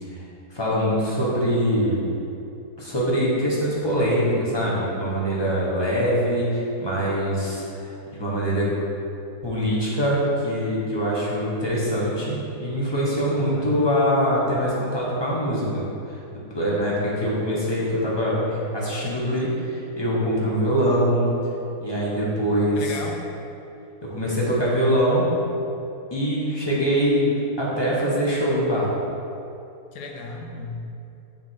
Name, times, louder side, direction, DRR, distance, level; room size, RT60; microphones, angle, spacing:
voice 1, 0.5-2.1 2.8-8.7 9.4-21.3 21.8-23.0 24.0-25.3 26.1-28.9, equal, 15° left, -6 dB, 1.2 m, -23 dB
voice 2, 22.8-23.3 29.9-30.9, left 3 dB, 85° left, 2 dB, 1.3 m, -35 dB
7.1 x 3.6 x 4.6 m, 2.8 s
omnidirectional pair, 1.7 m